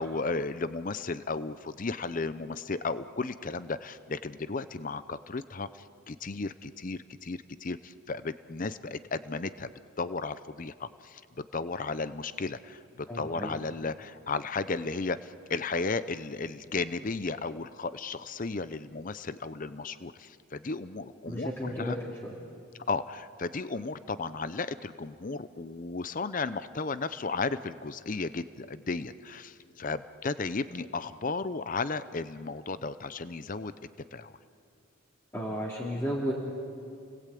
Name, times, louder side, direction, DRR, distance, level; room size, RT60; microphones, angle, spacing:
voice 1, 0.0-9.7 10.0-22.0 22.9-33.7 34.1-34.4, left 3 dB, 40° left, 14 dB, 0.6 m, -34 dB
voice 2, 13.1-13.5 21.3-22.0 22.2-22.3 35.3-36.3, equal, 10° left, -5 dB, 2.6 m, -33 dB
29.5 x 19.5 x 8.5 m, 2.6 s
head